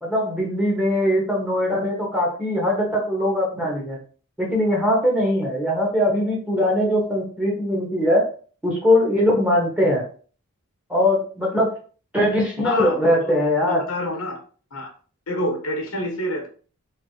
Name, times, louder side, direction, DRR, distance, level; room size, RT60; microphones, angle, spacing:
voice 1, 0.0-4.0 4.4-8.3 8.6-10.1 10.9-11.7 12.1-13.8, left 1 dB, 5° right, -2 dB, 1.0 m, -21 dB
voice 2, 12.6-14.4 14.7-14.9 15.3-16.5, left 1 dB, 80° left, 3 dB, 1.1 m, -28 dB
4.2 x 3.2 x 2.8 m, 0.41 s
head